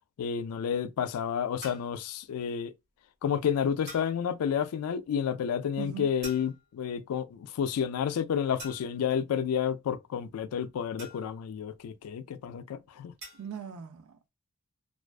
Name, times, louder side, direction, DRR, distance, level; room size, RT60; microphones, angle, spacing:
voice 1, 0.2-2.7 3.2-13.1, left 8 dB, 85° left, 0.3 m, -30 dB
sound 1, 1.6-2.0 3.9-4.2 6.2-6.8 8.6-9.1 11.0-11.5 13.2-13.6, equal, 50° right, 1.3 m, -46 dB
voice 2, 5.8-6.1 13.3-14.3, right 7 dB, 90° right, 0.4 m, -40 dB
2.4 x 2.2 x 2.3 m
head